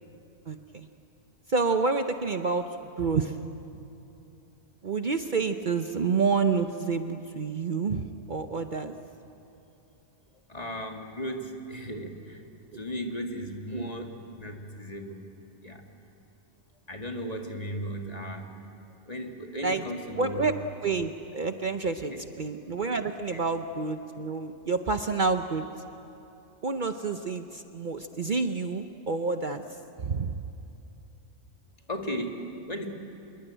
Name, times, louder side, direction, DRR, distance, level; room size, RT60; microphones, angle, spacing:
voice 1, 0.5-0.9 1.5-2.7 3.0-3.3 4.8-9.0 13.7-13.9 19.6-19.8 20.2-22.1 22.4-25.7 26.6-29.6 30.0-30.3, right 4 dB, 45° right, 8 dB, 0.9 m, -28 dB
voice 2, 10.5-12.4 12.7-15.2 15.6-15.8 16.9-18.5 19.1-20.5 22.0-22.3 23.3-23.4 31.9-32.9, equal, 35° left, 3 dB, 2.1 m, -36 dB
26.0 x 22.0 x 9.0 m, 2.9 s
omnidirectional pair, 1.2 m